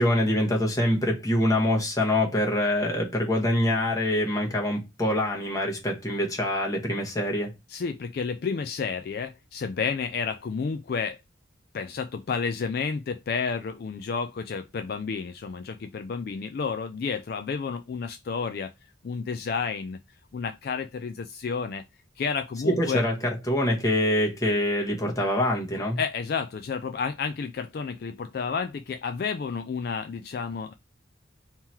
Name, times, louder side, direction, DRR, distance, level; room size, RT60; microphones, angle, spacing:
voice 1, 0.0-7.5 22.6-26.0, left 1 dB, 20° left, 1.1 m, -25 dB
voice 2, 7.7-11.2 11.7-18.7 19.0-20.0 20.3-21.8 22.2-23.0 26.0-30.7, left 5 dB, 55° left, 0.3 m, -31 dB
3.7 x 2.9 x 4.3 m
head